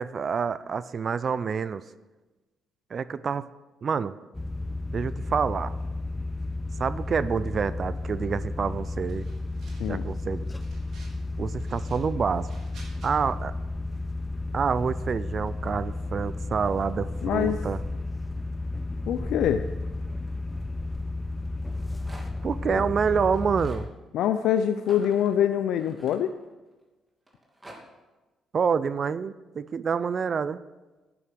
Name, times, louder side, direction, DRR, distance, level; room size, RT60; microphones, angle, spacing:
voice 1, 0.0-1.8 2.9-3.4 3.8-4.1 4.9-5.7 6.8-9.2 9.9-10.5 11.4-12.5 13.0-13.5 14.5-17.8 22.4-23.9 28.5-30.6, right 6 dB, 50° right, 16 dB, 0.5 m, -27 dB
sound 1, 4.3-23.9, left 2 dB, 10° left, 0.9 m, -33 dB
sound 2, 9.0-10.1 10.4-11.2 11.5-13.1, right 3 dB, 70° right, 3.6 m, -54 dB
voice 2, 17.2-17.6 19.1-19.6 22.7-22.8 24.1-26.3, left 10 dB, 80° left, 9 dB, 0.5 m, -24 dB
Rattle, 21.6-22.5 23.2-23.8 24.8-26.7 27.3-27.8, right 1 dB, 20° right, 2.8 m, -48 dB
11.0 x 9.8 x 6.3 m, 1.2 s
supercardioid pair, 75°, 0 cm